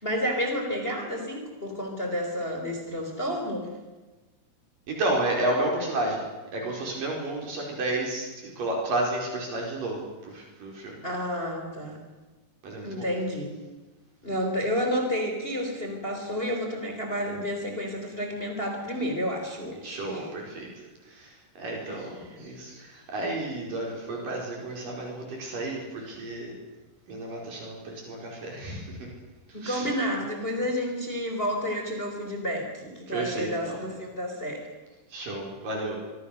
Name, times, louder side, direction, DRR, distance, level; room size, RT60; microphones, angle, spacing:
voice 1, 0.0-3.7 11.0-12.0 12.8-13.6 14.2-20.3 21.9-22.4 29.5-34.7, equal, 15° left, 3 dB, 3.7 m, -30 dB
voice 2, 4.9-6.2 6.5-11.0 12.6-13.1 19.8-26.5 27.1-29.1 29.5-29.9 33.1-33.8 35.1-36.0, right 2 dB, 70° right, 0 dB, 6.4 m, -32 dB
25.5 x 24.5 x 6.6 m, 1.2 s
omnidirectional pair, 4.0 m